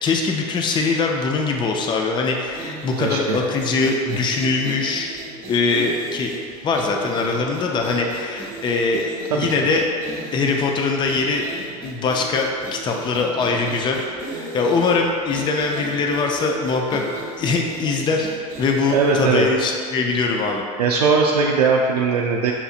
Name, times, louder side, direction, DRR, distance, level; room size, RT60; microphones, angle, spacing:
voice 1, 0.0-5.1 5.5-6.3 6.6-9.8 10.3-11.4 11.8-17.0 17.4-18.3 18.6-20.6, left 4 dB, 25° left, 1 dB, 0.4 m, -22 dB
sound 1, 2.5-19.5, right 2 dB, 45° right, 0.9 m, -36 dB
voice 2, 3.0-3.4 9.3-9.5 18.9-19.5 20.8-22.5, right 4 dB, 85° right, -1 dB, 0.4 m, -19 dB
6.9 x 2.6 x 2.4 m, 2.2 s
hypercardioid pair, 90°, 20 cm